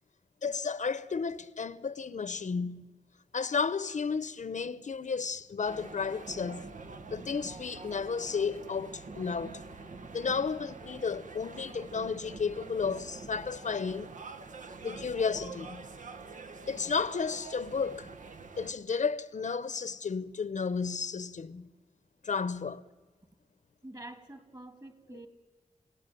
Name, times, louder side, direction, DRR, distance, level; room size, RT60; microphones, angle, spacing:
voice 1, 0.4-2.9 3.3-6.7 7.1-9.6 10.1-14.1 14.8-15.9 16.7-18.1 18.6-21.7 22.2-22.9 25.1-25.2, left 5 dB, 70° left, 0.9 m, -33 dB
sound 1, 5.6-18.7, right 4 dB, 80° right, 1.6 m, -46 dB
voice 2, 23.8-25.3, right 1 dB, 30° right, 3.0 m, -47 dB
29.5 x 17.5 x 9.2 m
wide cardioid pair, 95°, 13 cm